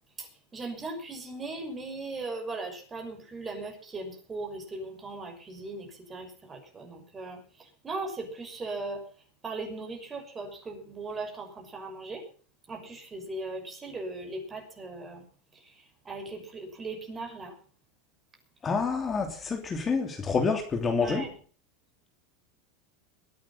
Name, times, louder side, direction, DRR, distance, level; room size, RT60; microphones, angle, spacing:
voice 1, 0.2-9.1 9.4-12.2 12.7-15.2 15.5-17.6 21.0-21.4, right 3 dB, 20° right, 4 dB, 6.1 m, -38 dB
voice 2, 18.6-21.2, left 4 dB, 25° left, 4 dB, 3.1 m, -28 dB
22.0 x 9.6 x 5.6 m, 0.42 s
supercardioid pair, 115°, 0 cm